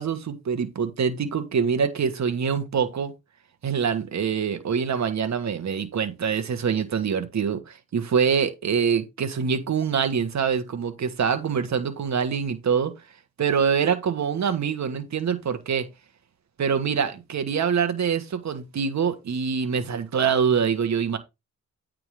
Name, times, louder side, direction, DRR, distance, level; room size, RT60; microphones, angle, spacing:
voice 1, 0.0-3.1 3.6-12.9 13.4-15.9 16.6-21.2, right 6 dB, 60° right, 1.5 m, -25 dB
8.9 x 3.8 x 5.0 m
cardioid pair, 75°, 31 cm